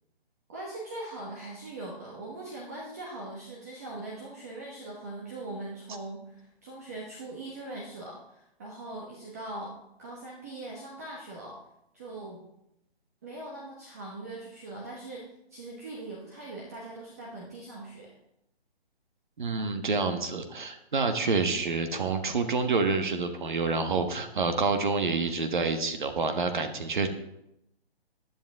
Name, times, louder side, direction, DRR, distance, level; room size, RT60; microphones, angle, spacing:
voice 1, 0.5-11.6 11.9-12.4 13.2-15.2 15.5-18.2, right 2 dB, 15° right, -3 dB, 1.0 m, -41 dB
voice 2, 19.4-27.1, right 4 dB, 50° right, 7 dB, 1.4 m, -28 dB
15.0 x 10.5 x 3.6 m, 0.83 s
hypercardioid pair, 175°, 32 cm